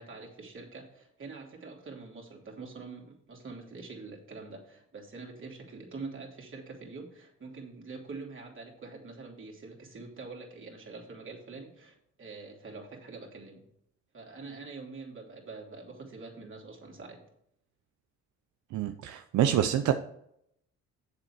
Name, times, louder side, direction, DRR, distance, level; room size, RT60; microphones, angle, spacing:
voice 1, 0.0-13.7 14.1-17.2, right 4 dB, 40° right, 0 dB, 3.0 m, -45 dB
voice 2, 18.7-19.9, right 10 dB, 75° right, 7 dB, 0.7 m, -26 dB
8.0 x 7.0 x 4.6 m, 0.72 s
cardioid pair, 90°, 30 cm